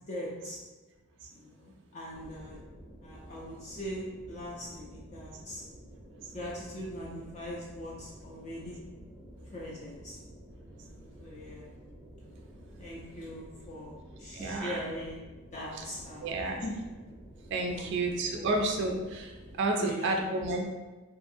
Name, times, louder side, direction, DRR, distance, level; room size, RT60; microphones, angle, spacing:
voice 1, 0.1-0.6 1.3-2.6 3.0-5.6 6.3-8.8 9.5-10.2 11.2-11.7 12.8-15.2 15.5-16.4 16.6-16.8 17.7-17.9 18.3-18.5 19.7-20.2, equal, 35° left, -5 dB, 0.4 m, -41 dB
sound 1, 2.1-19.6, equal, 10° right, 0.7 m, -51 dB
voice 2, 14.3-14.8 15.7-15.8 16.2-16.6 17.5-20.7, right 2 dB, 55° right, 2 dB, 0.3 m, -31 dB
2.6 x 2.4 x 2.6 m, 1.2 s
head